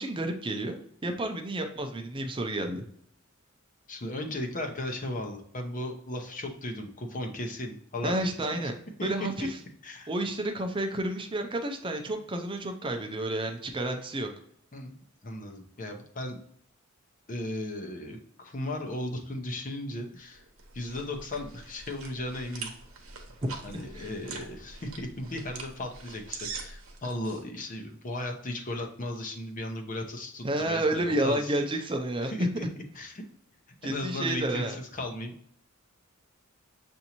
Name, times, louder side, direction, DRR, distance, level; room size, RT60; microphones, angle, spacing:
voice 1, 0.0-2.8 8.0-8.7 9.0-9.6 10.1-14.3 23.7-24.1 30.4-32.5 33.8-34.8, right 1 dB, 25° right, 4 dB, 0.5 m, -30 dB
voice 2, 3.9-8.2 9.0-9.1 9.4-9.5 9.8-10.1 14.7-14.9 15.2-16.4 17.3-20.4 20.7-22.7 23.6-31.8 32.2-32.7 32.9-33.2 33.8-35.3, left 1 dB, 40° left, 3 dB, 0.7 m, -36 dB
sound 1, 20.3-27.4, right 4 dB, 85° right, 0.9 m, -44 dB
6.9 x 2.6 x 2.9 m, 0.66 s
head